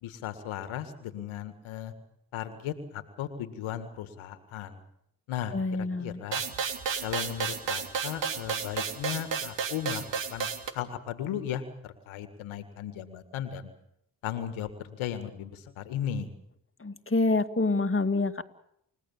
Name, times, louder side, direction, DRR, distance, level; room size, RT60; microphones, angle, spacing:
voice 1, 0.0-1.9 2.3-4.8 5.3-6.4 7.0-10.1 10.3-10.5 10.7-13.7 14.2-16.3, left 10 dB, 85° left, 10 dB, 1.9 m, -36 dB
voice 2, 5.5-6.2 16.8-18.4, left 3 dB, 25° left, 7 dB, 2.3 m, -27 dB
sound 1, 6.3-10.7, right 6 dB, 65° right, 3.2 m, -32 dB
29.5 x 16.5 x 7.3 m, 0.74 s
hypercardioid pair, 40°, 47 cm